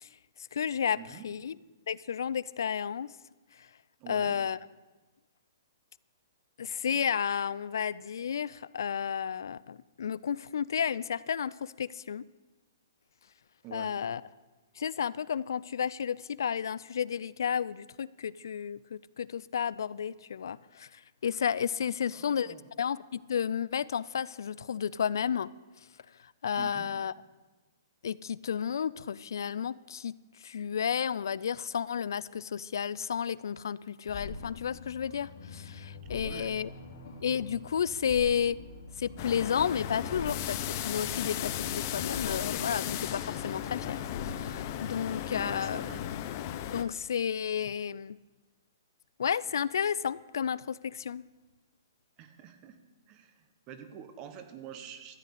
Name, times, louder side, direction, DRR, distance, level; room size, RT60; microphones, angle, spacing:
voice 1, 0.4-1.5 1.9-3.1 4.1-4.6 6.6-12.2 13.7-14.2 14.8-25.5 26.4-27.1 28.0-36.7 37.2-38.6 39.0-45.9 46.7-48.2 49.2-51.2, left 8 dB, 75° left, 20 dB, 0.4 m, -32 dB
voice 2, 1.0-1.3 4.0-4.4 13.6-13.9 21.9-22.7 26.6-26.9 36.1-36.5 45.3-46.0 52.2-52.8 53.1-55.2, right 9 dB, 30° right, 9 dB, 1.2 m, -47 dB
sound 1, 34.0-45.0, left 4 dB, 60° left, 2.7 m, -44 dB
sound 2, 39.2-46.8, left 11 dB, 40° left, 0.7 m, -36 dB
13.5 x 6.6 x 8.2 m, 1.2 s
hypercardioid pair, 150°, 2 cm